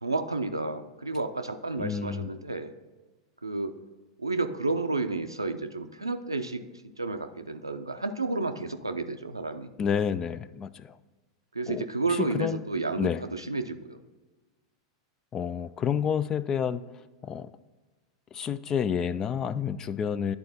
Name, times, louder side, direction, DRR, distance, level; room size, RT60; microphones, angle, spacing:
voice 1, 0.0-2.7 3.4-3.7 4.2-6.6 7.0-9.7 11.5-14.0, right 3 dB, 90° right, 7 dB, 0.5 m, -31 dB
voice 2, 1.8-2.3 9.8-11.0 11.7-12.6 13.0-13.2 15.3-16.8 17.2-17.5 18.3-20.4, left 7 dB, 25° left, 16 dB, 0.3 m, -29 dB
10.5 x 4.1 x 4.0 m, 1.2 s
figure-of-eight pair, 90°, 2 cm